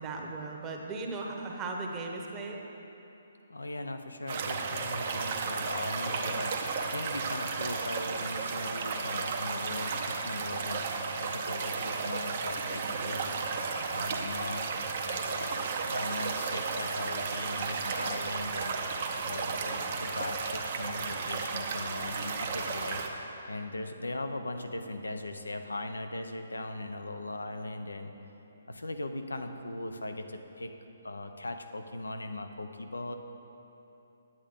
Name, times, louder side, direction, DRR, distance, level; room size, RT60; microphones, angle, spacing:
voice 1, 0.0-2.6, right 3 dB, 20° right, 0 dB, 0.9 m, -37 dB
voice 2, 3.5-13.4 13.9-14.7 15.0-18.8 19.2-23.0 23.5-28.1 28.7-30.7 31.0-33.2, left 2 dB, 85° left, 6 dB, 0.6 m, -39 dB
sound 1, 4.3-23.1, right 4 dB, 45° right, 0.7 m, -33 dB
8.9 x 8.7 x 3.6 m, 3.0 s
figure-of-eight pair, 140°, 0 cm